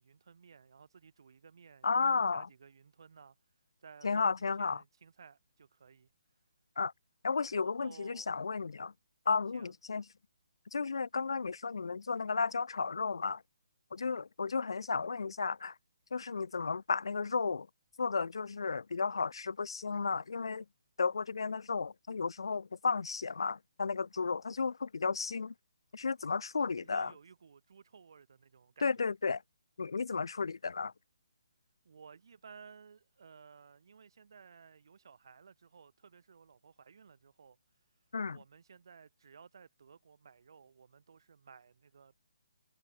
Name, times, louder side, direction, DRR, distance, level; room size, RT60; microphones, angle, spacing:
voice 1, 0.0-3.4 3.8-6.1 7.5-8.3 9.5-9.7 26.8-29.0 31.8-37.6 38.3-42.2, right 6 dB, 60° right, 7.8 m, -57 dB
voice 2, 1.8-2.5 4.0-4.8 6.8-6.9 7.2-8.9 9.2-10.0 10.7-13.4 13.9-15.7 16.1-17.7 18.0-20.6 21.0-25.5 25.9-27.1 28.8-29.4 29.8-30.9 38.1-38.4, left 4 dB, 80° left, 1.5 m, -33 dB
hypercardioid pair, 165°, 3 cm